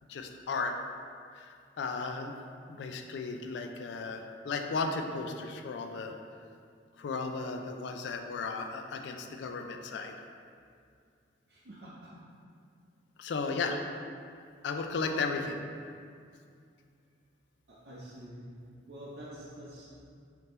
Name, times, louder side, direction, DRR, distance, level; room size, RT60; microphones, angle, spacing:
voice 1, 0.1-0.7 1.3-2.3 2.7-6.1 7.0-10.2 13.2-13.8 14.6-15.6, left 4 dB, 70° left, 4 dB, 0.3 m, -35 dB
voice 2, 11.5-11.9 13.3-13.8 15.1-15.4 17.7-18.5 18.9-19.9, right 1 dB, 60° right, -8 dB, 0.6 m, -46 dB
3.6 x 2.8 x 3.8 m, 2.3 s
head